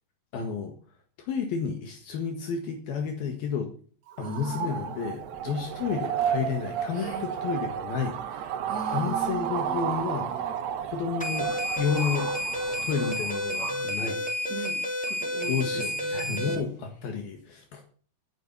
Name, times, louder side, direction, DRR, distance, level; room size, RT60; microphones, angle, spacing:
voice 1, 0.3-0.7 1.2-3.7 4.2-8.6 8.9-11.5 11.8-12.3 12.8-14.2 15.5-17.8, left 6 dB, 70° left, 4 dB, 3.5 m, -31 dB
sound 1, 4.1-13.8, right 9 dB, 80° right, 3.2 m, -32 dB
voice 2, 4.2-5.0 6.9-7.3 8.7-10.5 14.5-16.7, right 4 dB, 50° right, 2 dB, 1.0 m, -40 dB
sound 2, 11.2-16.5, equal, ahead, 2.3 m, -30 dB
13.0 x 10.0 x 6.0 m, 0.43 s
omnidirectional pair, 4.6 m